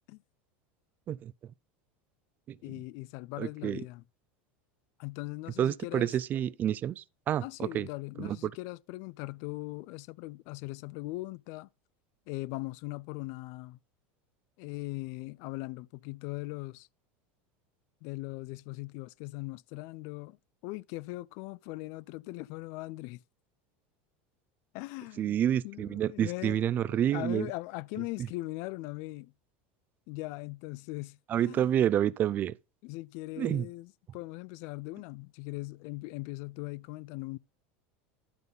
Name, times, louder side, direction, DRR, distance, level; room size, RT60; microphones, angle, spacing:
voice 1, 2.6-4.0 5.0-6.1 7.4-11.7 12.3-13.8 14.6-16.9 18.0-20.4 20.6-23.2 24.7-25.4 25.6-29.3 30.1-31.7 32.8-37.4, left 21 dB, 60° left, 0.3 m, -40 dB
voice 2, 3.4-3.8 5.6-7.9 8.2-8.5 25.2-27.5 31.3-32.6 33.4-33.7, right 10 dB, 35° right, 0.4 m, -29 dB
11.5 x 4.0 x 5.3 m
supercardioid pair, 125°, 5 cm